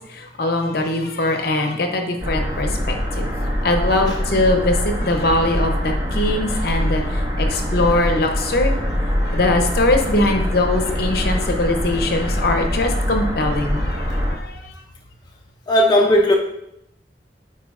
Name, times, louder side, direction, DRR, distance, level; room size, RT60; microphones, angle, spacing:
voice 1, 0.4-3.3 3.6-4.7 5.0-7.0 7.4-8.7 9.3-13.9 14.4-14.5, left 2 dB, 60° left, 0.8 m, -21 dB
sound 1, 2.2-14.4, equal, 25° right, 1.4 m, -23 dB
voice 2, 15.7-16.3, equal, 25° left, 0.5 m, -16 dB
9.1 x 4.2 x 2.5 m
head